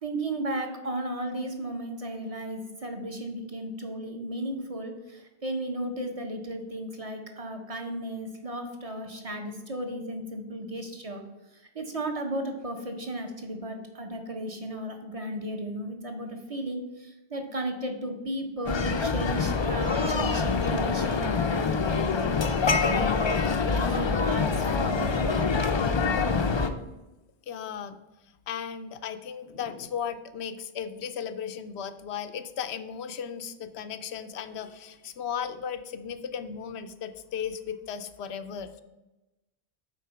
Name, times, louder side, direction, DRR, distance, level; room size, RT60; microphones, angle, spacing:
voice 1, 0.0-11.2 11.5-22.4 22.8-25.4, right 1 dB, 35° right, 4 dB, 1.0 m, -35 dB
sound 1, 18.7-26.7, left 5 dB, 40° left, 0.4 m, -25 dB
voice 2, 27.5-28.0 28.5-38.7, left 7 dB, 90° left, 10 dB, 0.9 m, -36 dB
8.2 x 3.9 x 5.7 m, 1.0 s
omnidirectional pair, 1.1 m